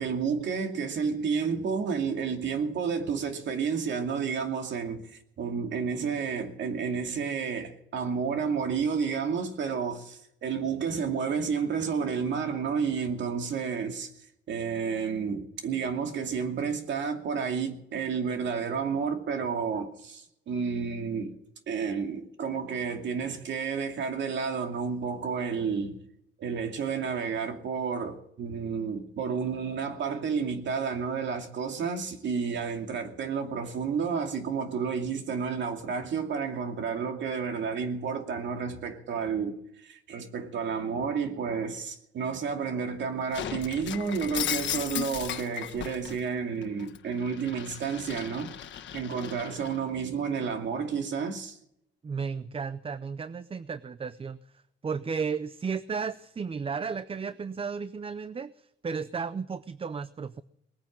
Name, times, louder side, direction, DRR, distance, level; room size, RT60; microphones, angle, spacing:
voice 1, 0.0-14.1 14.5-21.3 21.7-26.0 26.4-48.5 48.9-51.6, right 6 dB, 65° right, 2.4 m, -31 dB
Shatter, 43.3-46.2 46.6-49.8, left 9 dB, 65° left, 1.4 m, -36 dB
voice 2, 52.0-54.4 54.8-60.4, right 5 dB, 30° right, 0.6 m, -34 dB
20.0 x 9.3 x 7.4 m
cardioid pair, 90°, 20 cm